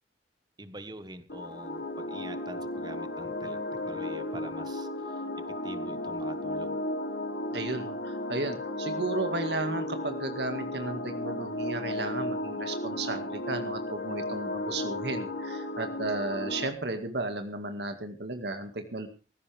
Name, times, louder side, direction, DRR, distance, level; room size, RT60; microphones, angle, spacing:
voice 1, 0.6-6.8, right 1 dB, 25° right, 11 dB, 1.4 m, -45 dB
sound 1, 1.3-16.7, left 1 dB, 85° left, 2.9 m, -34 dB
voice 2, 7.5-19.1, right 2 dB, 70° right, 6 dB, 2.1 m, -34 dB
18.0 x 15.5 x 3.5 m, 0.35 s
head